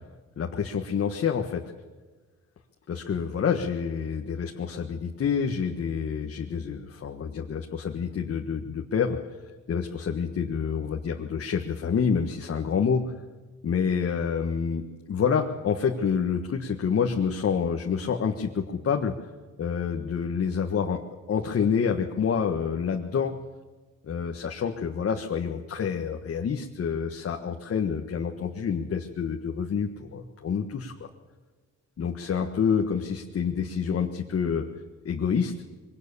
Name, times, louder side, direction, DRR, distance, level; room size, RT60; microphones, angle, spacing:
voice 1, 0.4-1.6 2.9-9.2 9.7-13.0 13.6-19.1 19.6-21.0 21.3-23.4 24.0-31.1 32.0-34.7 35.0-35.5, left 6 dB, 50° left, 3 dB, 1.6 m, -27 dB
22.5 x 18.0 x 7.0 m, 1.3 s
cardioid pair, 90°, 30 cm